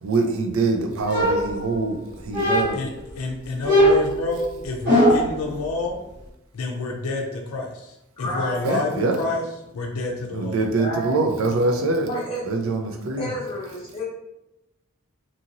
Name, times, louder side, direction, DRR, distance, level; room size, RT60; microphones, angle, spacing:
voice 1, 0.0-2.8 8.6-9.2 10.3-12.1 12.5-13.3, right 3 dB, 70° right, 5 dB, 0.4 m, -24 dB
sound 1, 1.1-1.9 2.3-3.0 3.6-5.4, equal, 50° right, 1.2 m, -20 dB
voice 2, 2.5-6.0 6.5-9.4 9.7-10.6, left 3 dB, 85° left, 1 dB, 0.5 m, -29 dB
voice 3, 8.2-8.8 10.8-11.2 12.0-14.0, equal, 25° left, -8 dB, 0.8 m, -31 dB
2.7 x 2.6 x 2.7 m, 0.91 s
head